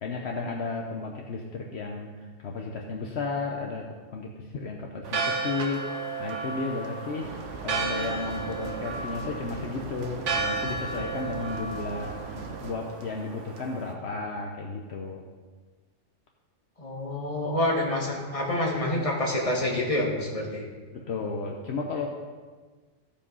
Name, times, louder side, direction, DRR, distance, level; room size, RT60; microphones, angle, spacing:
voice 1, 0.0-7.3 7.6-15.2 20.9-22.1, left 4 dB, 65° left, 1 dB, 1.1 m, -34 dB
Church bell, 5.0-13.9, right 4 dB, 85° right, 1.5 m, -33 dB
sound 1, 7.2-12.7, right 4 dB, 65° right, 1.1 m, -40 dB
voice 2, 16.8-20.6, left 1 dB, 30° left, -3 dB, 2.2 m, -27 dB
15.0 x 5.3 x 5.5 m, 1.4 s
omnidirectional pair, 1.2 m